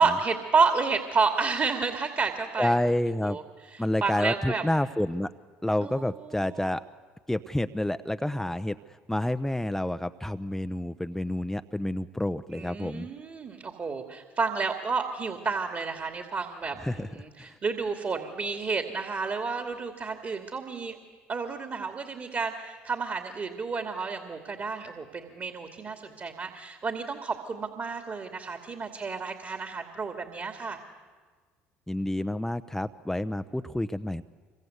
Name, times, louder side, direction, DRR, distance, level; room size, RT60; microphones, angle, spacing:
voice 1, 0.0-2.8 3.2-3.4 3.7-4.6 5.8-6.0 6.4-6.7 12.5-21.0 21.3-30.8, right 4 dB, 40° right, 6 dB, 2.7 m, -30 dB
voice 2, 2.6-3.4 3.8-5.3 5.6-6.8 7.3-8.8 9.1-13.1 16.8-17.1 17.4-17.5 31.9-34.2, left 1 dB, 5° left, 11 dB, 0.8 m, -29 dB
26.0 x 24.0 x 8.2 m, 1.5 s
hypercardioid pair, 65°, 6 cm